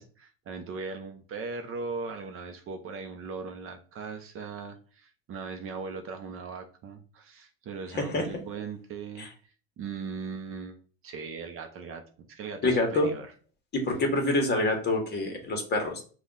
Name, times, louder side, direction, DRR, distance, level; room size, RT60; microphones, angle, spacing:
voice 1, 0.0-9.3 9.8-10.8 11.0-13.3, right 4 dB, 40° right, 5 dB, 0.8 m, -39 dB
voice 2, 7.9-8.3 9.2-9.3 12.6-13.1 13.7-16.0, left 2 dB, 30° left, 3 dB, 1.4 m, -26 dB
5.4 x 2.5 x 3.9 m, 0.40 s
supercardioid pair, 105°, 33 cm